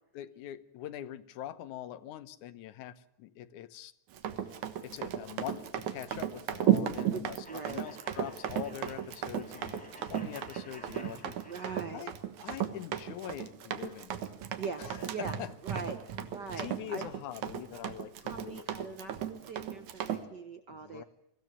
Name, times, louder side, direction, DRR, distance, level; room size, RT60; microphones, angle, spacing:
voice 1, 0.1-3.9 4.8-11.4 11.9-12.2 12.4-14.2 14.8-15.5 16.6-18.7 20.7-21.0, left 11 dB, 90° left, 14 dB, 2.4 m, -43 dB
Run, 4.1-20.2, right 10 dB, 80° right, 2.7 m, -35 dB
sound 1, 7.4-12.1, equal, ahead, 4.6 m, -53 dB
voice 2, 7.5-7.8 11.5-12.1 14.6-15.4 15.6-17.0 18.2-21.0, right 5 dB, 60° right, 8 dB, 1.1 m, -41 dB
23.5 x 16.0 x 8.3 m, 0.82 s
omnidirectional pair, 3.4 m